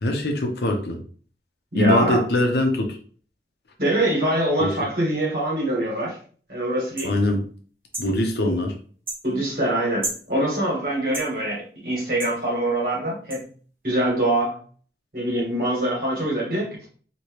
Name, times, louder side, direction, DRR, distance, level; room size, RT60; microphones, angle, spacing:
voice 1, 0.0-1.0 1.7-3.0 4.6-4.7 7.0-7.4 8.0-8.7, left 1 dB, 70° left, 3 dB, 0.8 m, -22 dB
voice 2, 1.7-2.2 3.8-6.2 6.5-7.1 9.2-13.5 13.8-14.6 15.1-16.8, right 1 dB, 55° right, -3 dB, 1.6 m, -24 dB
sound 1, 7.0-7.1 7.9-8.1 9.1-9.2 10.0-10.2 11.1-11.3 12.2-12.4 13.3-13.4, right 2 dB, 10° right, 0.6 m, -31 dB
3.1 x 3.0 x 3.0 m, 0.43 s
head